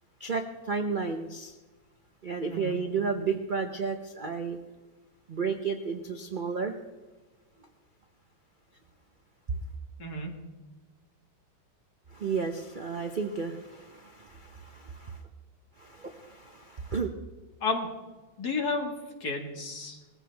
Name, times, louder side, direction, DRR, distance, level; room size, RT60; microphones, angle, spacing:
voice 1, 0.2-1.6 2.2-4.6 5.3-6.8 12.1-15.2 15.8-17.1, right 5 dB, 65° right, 5 dB, 0.4 m, -32 dB
voice 2, 10.0-10.3 17.6-17.9 18.4-19.0 19.2-20.0, left 3 dB, 50° left, 2 dB, 2.4 m, -31 dB
20.5 x 15.0 x 3.5 m, 1.2 s
omnidirectional pair, 2.2 m